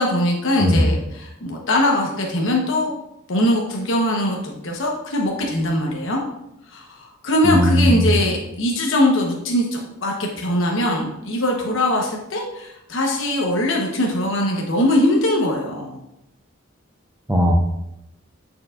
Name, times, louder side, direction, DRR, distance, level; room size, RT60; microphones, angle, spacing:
voice 1, 0.0-2.9 3.3-6.2 6.7-16.0, left 1 dB, 70° left, 0 dB, 1.0 m, -21 dB
voice 2, 7.4-8.1 17.3-17.6, equal, 10° right, 2 dB, 0.6 m, -17 dB
8.6 x 4.7 x 2.4 m, 0.83 s
head